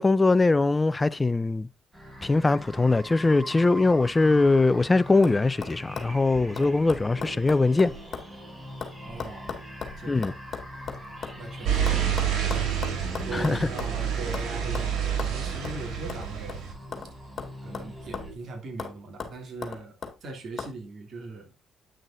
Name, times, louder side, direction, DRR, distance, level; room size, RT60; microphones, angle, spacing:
voice 1, 0.0-1.7 2.2-7.9 10.1-10.3 13.3-13.7, left 3 dB, 20° left, 0.5 m, -22 dB
sound 1, 1.9-18.3, equal, 25° right, 3.9 m, -42 dB
sound 2, 5.2-5.4 5.6-8.3 8.6-11.4 11.9-14.0 14.3-14.5 14.7-14.9 15.2-15.3 15.6-15.8 16.1-17.1 17.4-18.4 18.8-18.9 19.2-20.1 20.6-20.7, left 6 dB, 50° left, 2.1 m, -37 dB
voice 2, 6.5-6.9 9.0-9.6 10.0-10.2 11.4-11.9 12.3-12.7 13.2-16.6 17.6-20.0 20.2-21.5, right 3 dB, 60° right, 2.7 m, -40 dB
sound 3, 11.7-16.7, right 8 dB, 80° right, 2.9 m, -28 dB
9.0 x 6.2 x 2.6 m
cardioid pair, 90°, 0 cm